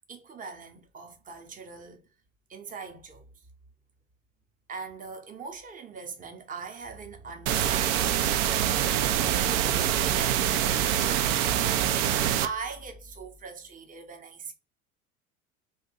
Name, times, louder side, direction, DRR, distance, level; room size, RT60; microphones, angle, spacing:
voice 1, 0.1-2.1 2.5-3.3 4.7-8.3 8.6-11.2 11.7-14.5, right 5 dB, 20° right, 0.7 m, -41 dB
sound 1, 7.5-12.5, right 10 dB, 60° right, 0.5 m, -25 dB
2.8 x 2.1 x 3.9 m
figure-of-eight pair, 70°, 43 cm